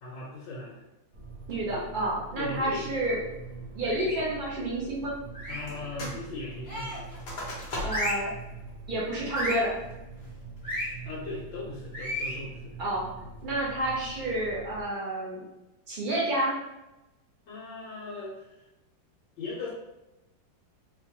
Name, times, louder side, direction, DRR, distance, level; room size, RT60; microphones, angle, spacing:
voice 1, 0.0-0.8 1.8-1.9 2.4-2.9 3.9-4.2 5.5-7.0 11.0-12.7 17.5-18.6 19.4-19.7, left 3 dB, 80° left, -7 dB, 1.6 m, -38 dB
sound 1, 1.1-14.8, right 4 dB, 55° right, 1.1 m, -44 dB
voice 2, 1.5-3.2 3.7-5.1 7.8-8.3 8.9-9.7 12.8-13.1 13.4-15.4 15.9-16.5, right 1 dB, 90° right, -5 dB, 0.4 m, -29 dB
sound 2, 3.8-4.3 5.3-5.8 6.6-7.1 7.8-8.3 9.3-9.7 10.6-10.9 11.9-12.4, equal, 35° left, 1.4 m, -33 dB
sound 3, 5.7-6.2 6.5-8.2 8.7-8.8 9.3-9.7 10.2-10.6, left 1 dB, 60° left, 1.6 m, -38 dB
4.3 x 2.2 x 2.8 m, 0.96 s
omnidirectional pair, 2.1 m